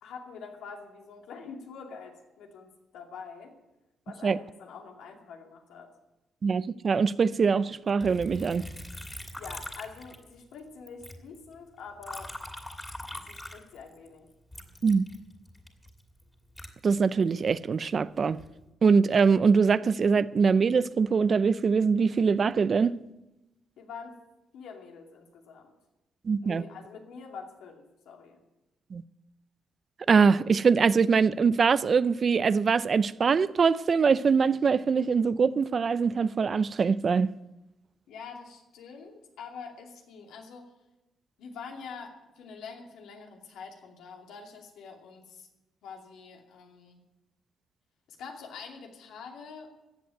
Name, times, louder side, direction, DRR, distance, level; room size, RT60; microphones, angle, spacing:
voice 1, 0.0-3.6 4.1-5.9 9.4-12.4 13.1-14.3 23.8-24.2 24.5-25.7 26.4-28.4 38.1-40.7 41.4-45.5 45.8-47.0 48.1-49.7, left 5 dB, 85° left, 2.6 m, -45 dB
voice 2, 6.4-8.7 14.8-15.0 16.8-18.4 18.8-23.0 26.2-26.6 28.9-29.0 30.1-37.3, right 5 dB, 45° right, 0.5 m, -23 dB
Liquid, 8.0-10.6 10.9-14.1 14.5-17.5 18.1-18.6, left 1 dB, 10° left, 2.5 m, -43 dB
14.5 x 7.8 x 9.3 m
cardioid pair, 90°, 0 cm